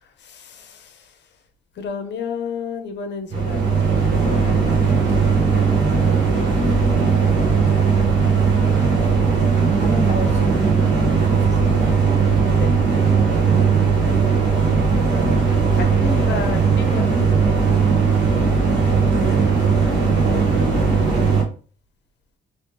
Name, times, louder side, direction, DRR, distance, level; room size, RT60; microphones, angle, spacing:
voice 1, 0.0-1.3 1.7-4.9 12.6-12.7 15.7-17.1 20.2-20.6, left 6 dB, 65° left, 7 dB, 0.7 m, -32 dB
sound 1, 3.3-21.4, right 5 dB, 65° right, 1.2 m, -18 dB
voice 2, 5.0-5.4 9.7-11.9 18.9-20.0, right 3 dB, 35° right, 0 dB, 1.3 m, -30 dB
3.4 x 3.0 x 2.9 m, 0.40 s
cardioid pair, 90°, 20 cm